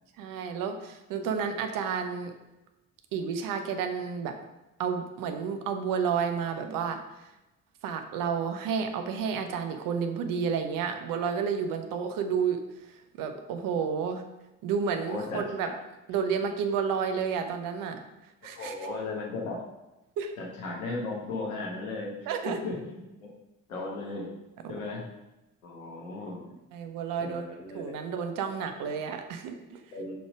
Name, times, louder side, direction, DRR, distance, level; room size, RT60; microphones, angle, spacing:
voice 1, 0.2-2.3 3.1-4.3 4.8-7.0 7.8-12.6 13.2-14.2 14.6-15.7 16.1-18.0 18.4-18.7 20.2-20.3 22.3-22.6 24.6-24.7 26.7-29.8, right 6 dB, 50° right, 6 dB, 0.9 m, -31 dB
voice 2, 15.1-15.7 18.6-19.6 20.4-22.1 22.4-23.3 23.7-24.3 24.7-25.1 25.6-26.4 27.2-28.0 29.9-30.2, left 3 dB, 75° left, -1 dB, 1.5 m, -36 dB
5.1 x 4.6 x 5.0 m, 0.98 s
figure-of-eight pair, 50°, 42 cm